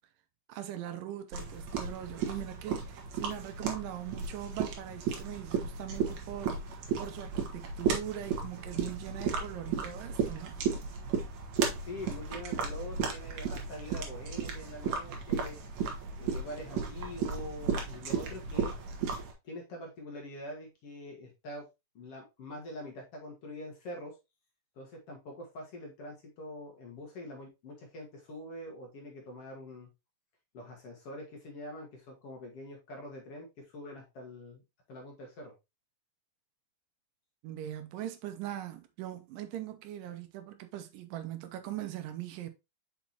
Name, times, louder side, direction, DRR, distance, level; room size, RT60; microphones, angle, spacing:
voice 1, 0.5-10.6 37.4-42.5, right 12 dB, 85° right, 2.5 m, -41 dB
sound 1, 1.3-19.3, right 6 dB, 65° right, 2.5 m, -34 dB
voice 2, 11.8-15.6 16.2-18.8 19.4-21.7 22.0-24.2 24.8-29.9 30.5-34.6 34.9-35.5, left 1 dB, 55° left, 2.1 m, -44 dB
6.2 x 5.6 x 2.9 m
omnidirectional pair, 3.9 m